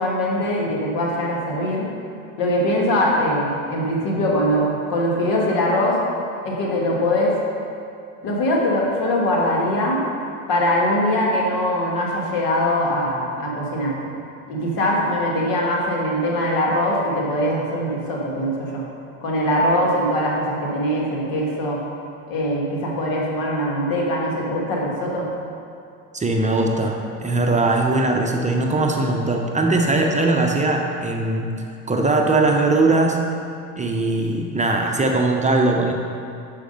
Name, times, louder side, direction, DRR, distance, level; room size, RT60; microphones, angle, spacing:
voice 1, 0.0-1.9 2.4-6.0 6.4-7.3 8.2-10.0 10.5-14.0 14.5-18.8 19.2-21.8 22.3-25.3, left 1 dB, 70° left, -3 dB, 1.7 m, -22 dB
voice 2, 26.1-33.2 33.8-35.9, right 2 dB, 20° right, 2 dB, 0.7 m, -20 dB
6.4 x 5.1 x 5.3 m, 2.5 s
supercardioid pair, 85°, 36 cm